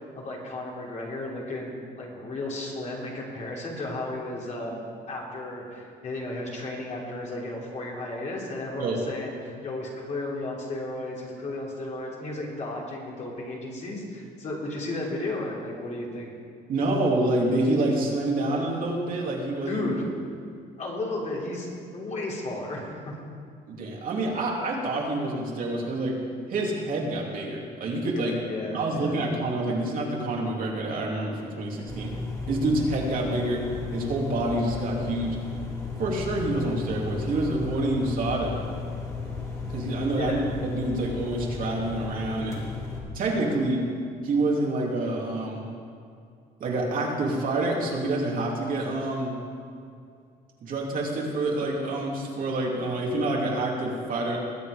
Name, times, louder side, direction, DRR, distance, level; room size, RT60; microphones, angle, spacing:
voice 1, 0.0-4.8 5.1-16.3 19.7-20.0 20.8-23.1 28.1-29.2 40.1-40.4, left 2 dB, 45° left, -3 dB, 3.4 m, -34 dB
voice 2, 16.7-19.9 23.7-26.2 26.5-28.4 28.7-32.1 32.5-33.6 33.9-35.4 36.0-38.6 39.7-40.4 40.6-42.6 43.1-43.8 44.2-45.7 46.6-49.3 50.6-54.4, right 2 dB, 55° right, -2 dB, 2.8 m, -27 dB
sound 1, 31.9-43.0, left 4 dB, 20° left, 3.1 m, -34 dB
20.5 x 7.9 x 5.1 m, 2.3 s
cardioid pair, 110°, 17 cm